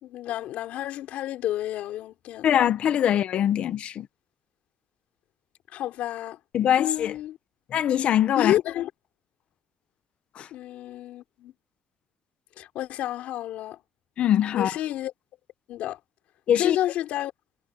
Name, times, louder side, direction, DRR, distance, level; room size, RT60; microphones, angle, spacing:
voice 1, 0.0-2.5 5.7-6.4 6.8-7.4 8.4-8.9 10.5-11.5 12.6-13.8 14.5-15.1 15.7-16.0 16.6-17.3, left 13 dB, 85° left, 3.7 m, -30 dB
voice 2, 2.4-4.1 6.5-7.1 7.7-8.5 10.3-10.5 14.2-14.8 16.5-16.8, left 10 dB, 55° left, 1.2 m, -22 dB
cardioid pair, 145°, 2 cm